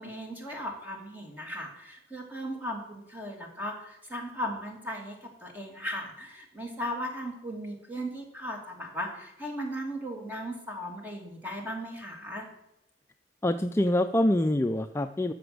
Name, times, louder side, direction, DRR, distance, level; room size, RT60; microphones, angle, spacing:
voice 1, 0.0-12.5, equal, 10° right, 1 dB, 2.5 m, -37 dB
voice 2, 13.4-15.3, left 1 dB, 15° left, 8 dB, 0.4 m, -25 dB
13.0 x 6.0 x 7.8 m, 0.85 s
head